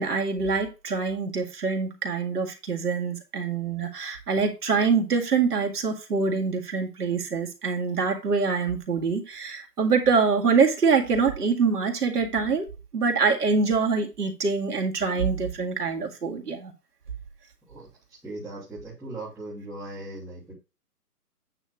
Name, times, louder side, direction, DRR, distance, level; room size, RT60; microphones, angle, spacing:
voice 1, 0.0-12.7 12.9-16.7, right 5 dB, 80° right, 2.0 m, -25 dB
voice 2, 18.2-20.5, right 2 dB, ahead, 1.0 m, -38 dB
9.0 x 3.0 x 4.8 m
hypercardioid pair, 160°, 47 cm